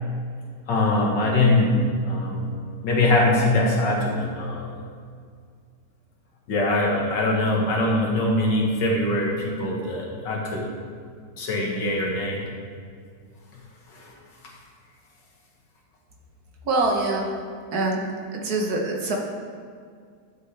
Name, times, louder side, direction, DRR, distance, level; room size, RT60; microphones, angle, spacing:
voice 1, 0.7-2.5 2.8-4.7 6.5-10.7 11.4-12.4 13.9-14.1, left 2 dB, 80° left, -2 dB, 2.2 m, -22 dB
voice 2, 16.6-17.3 17.7-18.1 18.3-19.2, right 2 dB, 60° right, 0 dB, 1.5 m, -24 dB
12.0 x 7.5 x 3.3 m, 2.1 s
omnidirectional pair, 1.9 m